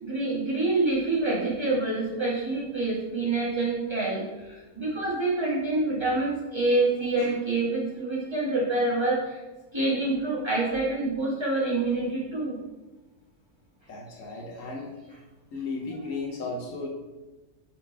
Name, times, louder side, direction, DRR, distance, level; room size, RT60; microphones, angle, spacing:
voice 1, 0.0-9.4 9.7-12.6, right 2 dB, 20° right, -7 dB, 1.9 m, -27 dB
voice 2, 13.9-14.9 15.5-16.9, left 3 dB, 65° left, -1 dB, 1.2 m, -35 dB
5.0 x 4.4 x 4.7 m, 1.1 s
omnidirectional pair, 1.5 m